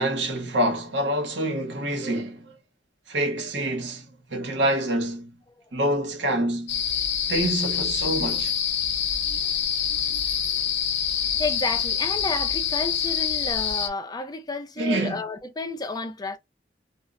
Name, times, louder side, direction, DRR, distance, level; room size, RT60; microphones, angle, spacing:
voice 1, 0.0-2.5 3.1-5.4 5.7-6.8 7.3-8.5 14.8-15.2, right 1 dB, 90° right, 0.9 m, -26 dB
sound 1, 6.7-13.9, left 8 dB, 85° left, 0.5 m, -26 dB
voice 2, 11.4-16.4, left 3 dB, 25° left, 0.4 m, -31 dB
2.1 x 2.0 x 3.5 m
head